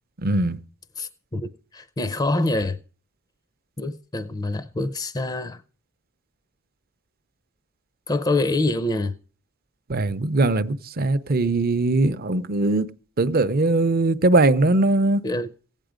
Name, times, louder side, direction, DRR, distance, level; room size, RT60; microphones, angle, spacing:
voice 1, 0.2-0.6 9.9-12.9 13.2-15.2, right 2 dB, 45° right, 0.6 m, -20 dB
voice 2, 1.0-2.8 3.8-5.6 8.1-9.1 15.2-15.5, left 2 dB, 20° left, 0.5 m, -25 dB
16.5 x 9.1 x 5.0 m
head